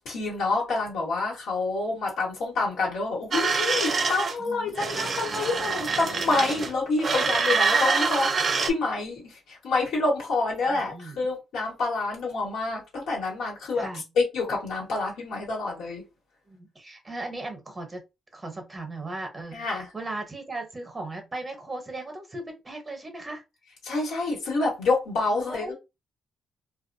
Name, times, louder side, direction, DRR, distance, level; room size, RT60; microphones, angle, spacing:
voice 1, 0.0-13.9 14.2-16.0 19.5-19.9 23.8-25.7, left 3 dB, 85° left, 1.2 m, -27 dB
sound 1, 3.3-4.3 4.8-6.7 7.0-8.7, right 5 dB, 45° right, 0.4 m, -25 dB
voice 2, 4.4-4.8 10.7-11.2 13.7-14.0 16.5-18.0 18.3-23.4 25.3-25.7, right 2 dB, 25° right, 0.8 m, -37 dB
2.2 x 2.2 x 2.6 m
cardioid pair, 90°, 0 cm